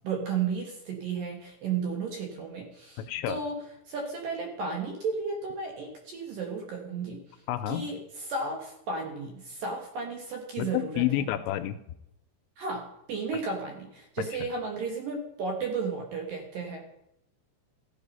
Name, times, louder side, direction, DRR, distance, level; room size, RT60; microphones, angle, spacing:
voice 1, 0.0-3.6 3.9-7.2 7.7-11.0 12.6-16.8, right 4 dB, 65° right, 2 dB, 2.4 m, -33 dB
voice 2, 3.0-3.4 7.5-7.9 10.6-11.8, left 13 dB, 80° left, 10 dB, 2.8 m, -29 dB
14.5 x 8.6 x 5.4 m, 0.82 s
omnidirectional pair, 5.4 m